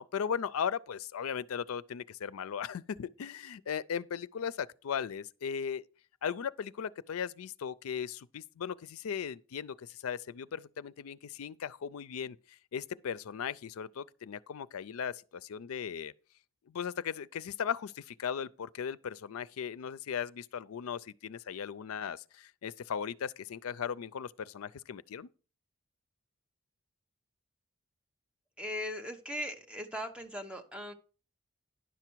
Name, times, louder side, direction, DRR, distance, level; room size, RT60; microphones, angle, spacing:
voice 1, 0.0-5.8 6.2-16.1 16.7-25.3, left 7 dB, 85° left, 0.4 m, -37 dB
voice 2, 28.6-30.9, equal, 5° right, 0.8 m, -39 dB
10.5 x 5.9 x 4.5 m
head